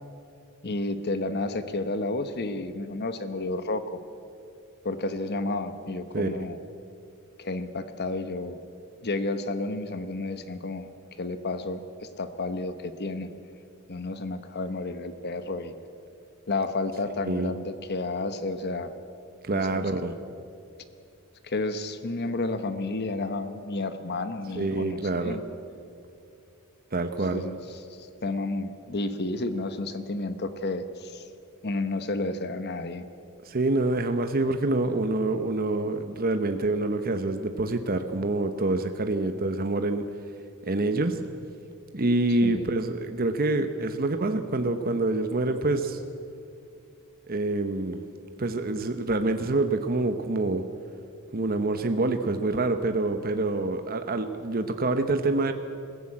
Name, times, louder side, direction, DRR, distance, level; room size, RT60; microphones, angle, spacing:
voice 1, 0.6-4.0 4.8-6.6 7.4-8.6 9.0-11.8 12.2-13.3 13.9-15.7 16.5-18.9 19.5-19.8 21.4-25.4 27.3-27.6 28.0-31.3 31.6-33.0 42.4-42.7, left 2 dB, 50° left, 11 dB, 1.0 m, -31 dB
voice 2, 19.4-20.1 24.5-25.4 26.9-27.5 33.4-40.0 40.7-41.2 41.9-46.0 47.3-48.0 48.4-50.6 51.3-55.5, right 2 dB, 45° right, 7 dB, 1.0 m, -26 dB
22.0 x 15.5 x 8.7 m, 2.5 s
head